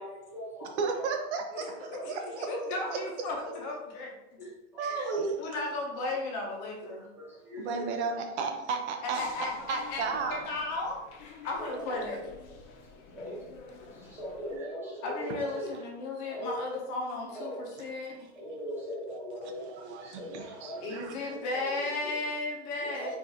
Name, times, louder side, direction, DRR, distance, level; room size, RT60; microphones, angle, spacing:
voice 1, 0.0-1.1 1.5-1.6 1.9-2.7 3.4-3.6 4.4-5.3 6.8-7.9 11.6-12.1 12.5-12.6 13.1-13.5 13.9-15.7 16.2-16.6 17.3-17.8 18.3-20.8 21.3-22.1 22.8-23.1, equal, 5° right, -6 dB, 0.7 m, -41 dB
voice 2, 0.8-3.0 3.4-3.5 4.8-5.4 7.6-9.2 9.7-10.4 19.6-21.1, right 4 dB, 65° right, 4 dB, 0.7 m, -34 dB
voice 3, 1.9-4.4 4.8-5.1 5.4-7.1 9.0-12.2 15.0-18.1 20.8-23.1, left 2 dB, 35° left, 0 dB, 0.6 m, -35 dB
sound 1, 9.1-14.6, left 4 dB, 70° left, 0.8 m, -49 dB
4.6 x 2.5 x 2.7 m, 0.96 s
supercardioid pair, 170°, 37 cm